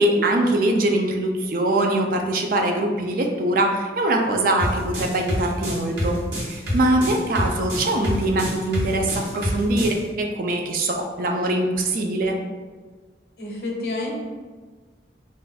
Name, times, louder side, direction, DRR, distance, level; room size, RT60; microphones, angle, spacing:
voice 1, 0.0-12.4, right 1 dB, 50° right, 2 dB, 0.4 m, -22 dB
sound 1, 4.6-10.0, equal, 70° right, 1.1 m, -26 dB
voice 2, 13.4-14.2, left 2 dB, 60° left, -2 dB, 0.7 m, -29 dB
2.5 x 2.2 x 4.0 m, 1.4 s
head